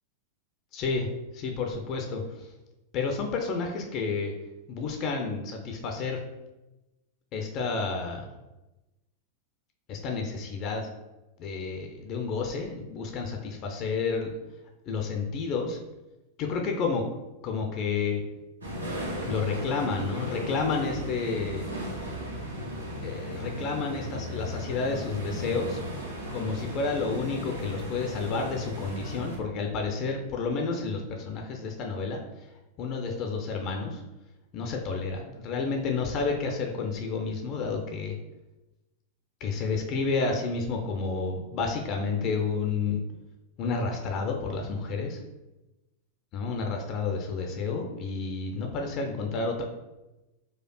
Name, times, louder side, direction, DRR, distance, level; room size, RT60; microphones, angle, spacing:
voice 1, 0.7-1.1 1.4-2.5 2.9-4.3 4.7-6.2 7.3-8.3 9.9-10.9 11.4-14.3 14.9-15.8 16.4-17.0 17.4-18.2 19.2-21.7 23.0-25.8 26.3-32.2 32.8-34.0 34.5-38.2 39.4-43.0 43.6-45.2 46.3-49.6, left 4 dB, 40° left, 2 dB, 0.4 m, -30 dB
sound 1, 18.6-29.4, equal, 75° right, 0.6 m, -36 dB
4.3 x 2.3 x 2.2 m, 1.0 s
figure-of-eight pair, 90°, 0 cm